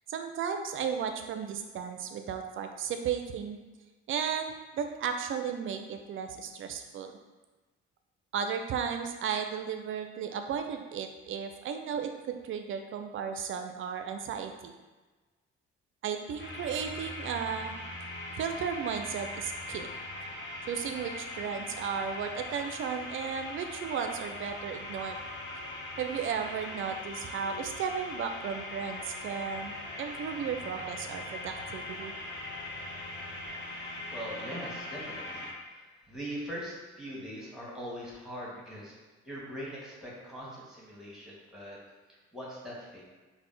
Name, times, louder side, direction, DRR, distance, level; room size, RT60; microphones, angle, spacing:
voice 1, 0.1-3.6 4.1-7.1 8.3-14.7 16.0-17.7 18.4-19.9 20.7-25.2 26.0-32.1, right 7 dB, 40° right, 6 dB, 0.4 m, -34 dB
sound 1, 16.4-35.5, left 2 dB, 30° left, 0.8 m, -41 dB
voice 2, 33.5-38.9 39.2-41.8 42.3-43.0, equal, ahead, -5 dB, 1.3 m, -42 dB
3.7 x 2.1 x 3.8 m, 1.3 s
figure-of-eight pair, 40°, 34 cm